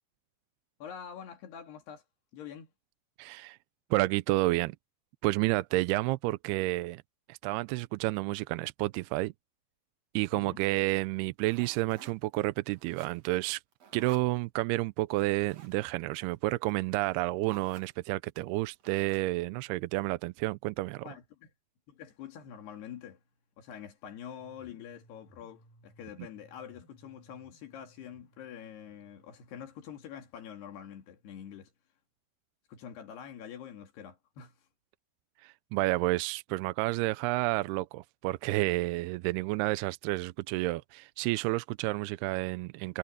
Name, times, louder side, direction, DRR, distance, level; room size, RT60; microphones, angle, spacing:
voice 1, 0.8-2.0 2.3-2.7 10.3-10.6 21.0-21.5 21.9-23.2 23.6-31.7 32.7-34.5, left 8 dB, 80° left, 4.5 m, -46 dB
voice 2, 3.2-3.6 3.9-4.8 5.2-7.0 7.3-9.3 10.1-13.6 13.9-21.1 35.4-43.0, right 20 dB, 85° right, 2.5 m, -30 dB
sound 1, 11.4-12.4 12.7-13.4 13.7-14.3 15.2-15.8 16.7-16.8 17.1-17.2 17.4-17.9 18.8-19.4, right 6 dB, 45° right, 2.8 m, -53 dB
sound 2, 24.4-30.4, right 1 dB, 55° left, 5.0 m, -62 dB
omnidirectional pair, 4.6 m